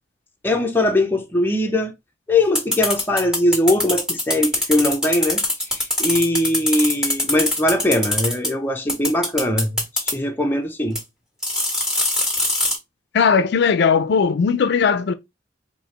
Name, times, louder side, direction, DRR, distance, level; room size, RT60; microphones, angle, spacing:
voice 1, 0.4-1.9 2.3-5.4 5.7-11.0, left 1 dB, 10° left, 0.7 m, -21 dB
sound 1, 2.5-8.5 8.9-10.1 10.9-11.0 11.4-12.8, left 2 dB, 5° right, 1.7 m, -22 dB
voice 2, 13.1-15.1, left 6 dB, 65° left, 0.4 m, -18 dB
4.7 x 2.8 x 3.2 m
head